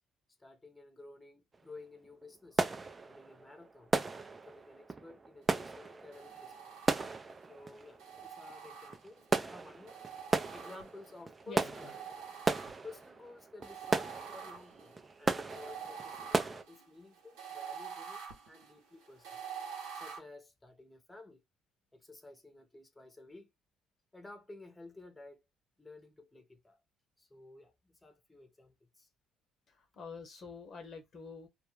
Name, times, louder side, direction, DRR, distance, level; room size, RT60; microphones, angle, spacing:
voice 1, 0.4-2.6 3.0-3.9 4.2-6.7 7.5-10.0 10.5-12.0 12.8-19.4 19.9-21.4 21.9-23.5 24.1-25.4 25.8-26.8 27.2-29.1, left 2 dB, 15° left, 0.7 m, -53 dB
sound 1, 1.5-1.7 2.0-16.6, right 3 dB, 30° right, 0.4 m, -36 dB
sound 2, 6.1-7.4 8.0-9.3 9.9-11.2 11.7-13.1 13.6-20.2, right 7 dB, 80° right, 0.9 m, -47 dB
voice 2, 11.5-12.0 29.7-31.5, left 4 dB, 55° left, 0.8 m, -47 dB
2.3 x 2.1 x 3.1 m
supercardioid pair, 65°, 0 cm